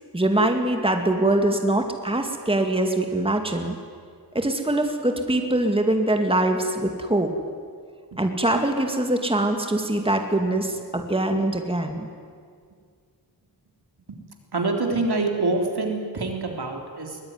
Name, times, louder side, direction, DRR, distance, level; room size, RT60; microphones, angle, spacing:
voice 1, 0.1-3.8 4.3-7.3 8.2-12.1, right 1 dB, 15° right, 4 dB, 2.2 m, -23 dB
voice 2, 14.5-17.2, right 3 dB, 80° right, 2 dB, 3.7 m, -25 dB
22.0 x 21.0 x 9.7 m, 2.1 s
wide cardioid pair, 90°, 39 cm